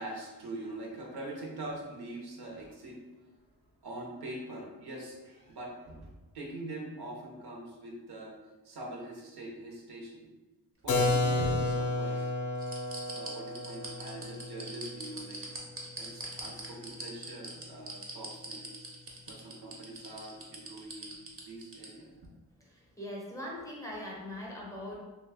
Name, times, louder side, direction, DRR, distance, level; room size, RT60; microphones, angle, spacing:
voice 1, 0.0-3.3 3.8-8.4 8.6-10.3 10.8-12.3 13.1-15.4 16.0-18.7 19.3-22.1, right 1 dB, 80° right, -1 dB, 0.8 m, -43 dB
sound 1, 10.8-12.2 12.6-21.9 22.2-22.3, right 2 dB, 35° right, 0.5 m, -42 dB
Keyboard (musical), 10.9-16.5, left 2 dB, 55° left, 0.4 m, -32 dB
voice 2, 22.6-25.0, left 1 dB, 10° left, -4 dB, 0.6 m, -41 dB
2.7 x 2.2 x 3.4 m, 1.1 s
wide cardioid pair, 155°, 38 cm